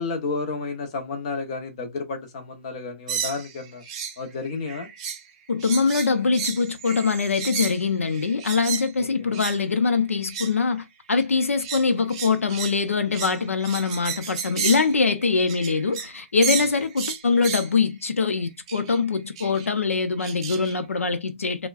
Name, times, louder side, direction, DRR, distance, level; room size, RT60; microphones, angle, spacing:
voice 1, 0.0-3.8 4.2-4.9 9.0-9.4 16.6-16.7, left 4 dB, 30° left, 0.8 m, -31 dB
sound 1, 3.1-4.2 4.5-5.3 5.6-8.9 9.3-9.6 10.2-10.6 11.2-16.2 16.4-17.7 18.7-19.0 19.4-19.7 20.2-20.7, right 7 dB, 25° right, 0.5 m, -32 dB
voice 2, 5.5-21.7, left 4 dB, 80° left, 0.7 m, -23 dB
4.5 x 2.2 x 2.4 m
hypercardioid pair, 160°, 7 cm